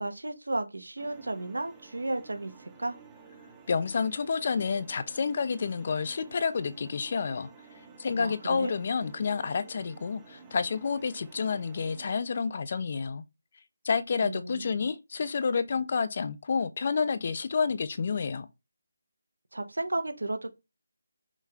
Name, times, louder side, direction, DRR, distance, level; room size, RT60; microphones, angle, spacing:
voice 1, 0.0-2.9 8.2-8.8 14.2-14.7 19.5-20.5, right 2 dB, 85° right, 1.0 m, -33 dB
sound 1, 1.0-12.2, right 5 dB, 10° right, 0.6 m, -53 dB
voice 2, 3.7-7.5 8.0-13.2 13.8-18.5, left 5 dB, 40° left, 0.5 m, -29 dB
5.5 x 3.1 x 2.4 m
figure-of-eight pair, 160°, 0 cm